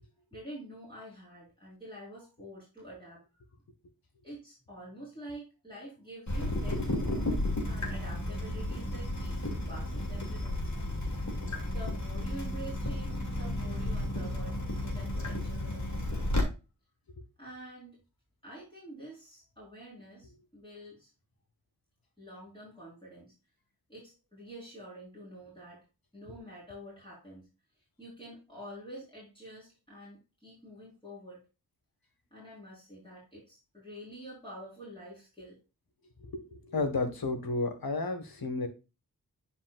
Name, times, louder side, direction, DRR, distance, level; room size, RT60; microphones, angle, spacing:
voice 1, 0.3-3.4 4.2-6.9 7.2-10.9 11.5-16.3 17.4-18.0 18.4-21.1 22.2-23.3 23.9-25.8 26.1-27.5 28.0-31.5 32.3-35.6, right 1 dB, 15° left, -8 dB, 4.5 m, -47 dB
Water tap faucet / Drip, 6.3-16.4, left 1 dB, 50° left, 2.8 m, -33 dB
voice 2, 36.2-38.7, left 3 dB, 75° left, 7 dB, 1.7 m, -32 dB
9.9 x 5.3 x 2.4 m, 0.29 s
wide cardioid pair, 65°, 36 cm